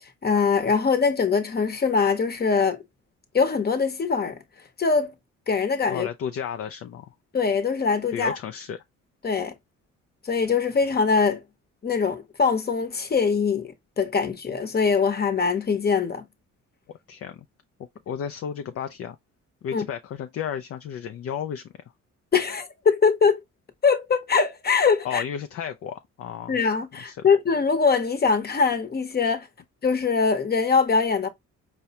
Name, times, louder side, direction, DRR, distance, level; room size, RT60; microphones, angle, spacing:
voice 1, 0.2-2.8 3.3-4.4 4.8-5.1 5.5-6.1 7.3-8.3 9.2-9.5 10.2-11.4 11.8-16.2 19.7-19.9 22.3-23.4 23.8-25.2 26.5-29.5 29.8-31.3, left 5 dB, 30° left, 0.9 m, -22 dB
voice 2, 5.9-7.1 8.1-8.8 17.1-17.5 18.1-19.2 19.6-21.7 25.0-26.6 27.0-27.3, left 8 dB, 50° left, 0.4 m, -33 dB
4.6 x 2.1 x 2.8 m
cardioid pair, 90°, 30 cm